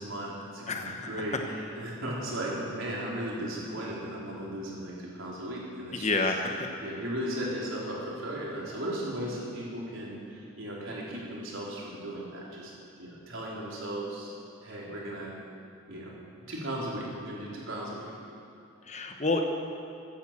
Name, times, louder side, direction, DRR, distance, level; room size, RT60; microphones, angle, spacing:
voice 1, 0.0-6.2 6.8-12.7 13.0-14.3 14.6-15.3 15.9-16.1 16.5-18.1, right 1 dB, 70° right, -5 dB, 4.1 m, -36 dB
voice 2, 0.7-1.1 5.9-6.7 18.9-19.4, left 3 dB, 35° left, 4 dB, 1.1 m, -29 dB
15.5 x 10.0 x 7.5 m, 2.7 s
head